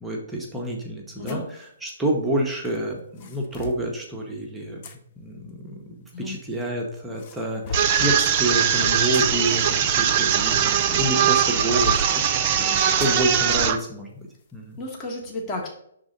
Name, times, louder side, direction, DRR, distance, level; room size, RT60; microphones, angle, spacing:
voice 1, 0.0-4.8 5.2-12.1 12.6-14.3 14.5-14.8, right 1 dB, 5° right, -2 dB, 1.0 m, -28 dB
sound 1, 1.3-1.5 2.6-3.9 4.8-5.0 6.1-6.7 7.2-8.1 8.8-10.9 11.4-12.1 13.0-13.2 13.7-13.8 14.3-14.5, left 4 dB, 40° left, 0.8 m, -37 dB
sound 2, 7.7-13.8, right 9 dB, 35° right, 0.6 m, -21 dB
voice 2, 12.4-12.9 14.8-15.7, left 2 dB, 20° left, -2 dB, 1.5 m, -33 dB
6.1 x 3.8 x 5.2 m, 0.72 s
figure-of-eight pair, 130°, 0 cm